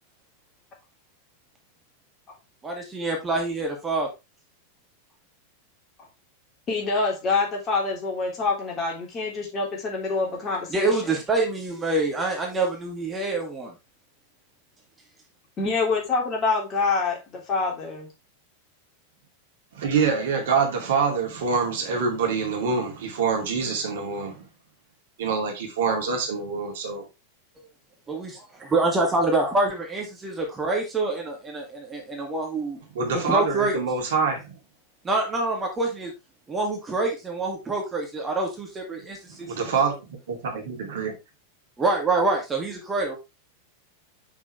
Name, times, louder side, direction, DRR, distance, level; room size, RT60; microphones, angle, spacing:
voice 1, 2.6-4.1 10.7-13.7 28.1-32.8 33.1-33.8 35.0-36.1 36.5-39.5 41.8-43.2, right 2 dB, 15° right, 2.2 m, -26 dB
voice 2, 6.7-10.9 15.6-18.1, left 4 dB, 30° left, 3.3 m, -26 dB
voice 3, 19.7-24.4 25.2-27.0 32.9-34.4 39.4-41.1, right 5 dB, 55° right, 2.5 m, -25 dB
7.2 x 6.4 x 3.3 m
figure-of-eight pair, 90°, 0 cm